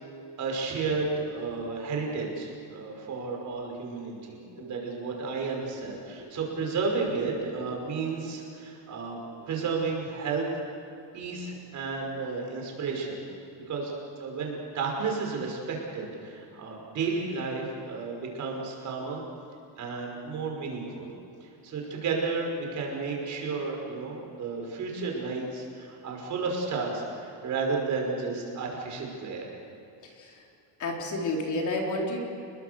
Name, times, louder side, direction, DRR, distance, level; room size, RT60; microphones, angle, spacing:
voice 1, 0.4-9.2 9.5-10.5 11.1-13.2 13.7-13.9 14.2-19.2 19.8-21.1 21.4-29.5, right 4 dB, 40° right, 0 dB, 5.8 m, -32 dB
voice 2, 4.2-4.7 6.2-6.3 9.4-9.5 30.0-30.5 30.8-32.2, left 2 dB, 40° left, 0 dB, 4.1 m, -32 dB
29.5 x 22.5 x 6.9 m, 2.6 s
cardioid pair, 170°, 44 cm